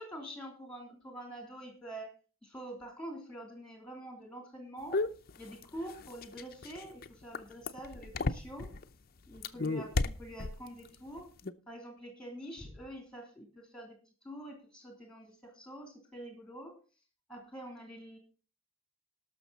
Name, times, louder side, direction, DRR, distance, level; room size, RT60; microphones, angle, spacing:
voice 1, 0.0-2.2 2.4-5.0 5.4-8.7 9.3-11.3 11.7-16.8 17.3-18.2, right 1 dB, 5° left, 3 dB, 3.2 m, -46 dB
sound 1, 4.9-8.8 9.3-10.9 11.2-11.5, left 3 dB, 45° left, 0.6 m, -33 dB
19.0 x 6.4 x 4.1 m, 0.35 s
head